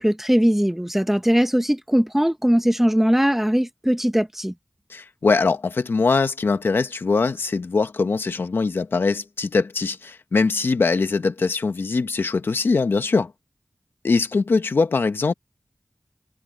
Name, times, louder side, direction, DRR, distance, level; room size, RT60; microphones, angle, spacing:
voice 1, 0.0-4.5, equal, 5° right, 1.3 m, -20 dB
voice 2, 4.9-13.3 14.0-15.3, left 4 dB, 80° left, 1.2 m, -22 dB
cardioid pair, 45°, 4 cm